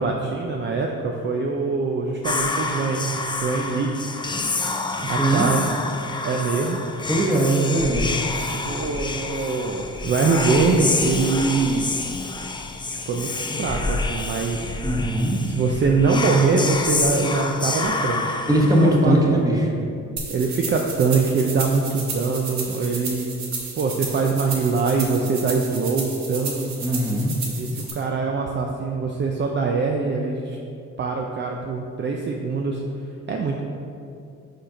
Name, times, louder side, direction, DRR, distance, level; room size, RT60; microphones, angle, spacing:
voice 1, 0.0-4.1 5.1-5.7 6.2-6.8 8.4-11.9 12.9-14.7 15.4-18.4 18.8-19.2 20.3-23.3 23.8-26.7 27.5-30.6 31.0-32.8 33.3-33.6, right 4 dB, 40° right, 1 dB, 0.5 m, -23 dB
Whispering, 2.2-19.4, left 3 dB, 15° left, 0.4 m, -28 dB
voice 2, 5.0-5.5 7.1-8.2 14.8-15.6 18.5-19.7 26.8-27.4, right 1 dB, 10° right, -1 dB, 1.1 m, -20 dB
sound 1, 20.2-27.9, right 4 dB, 65° right, 1.3 m, -33 dB
5.2 x 4.3 x 5.0 m, 2.5 s
cardioid pair, 90°, 30 cm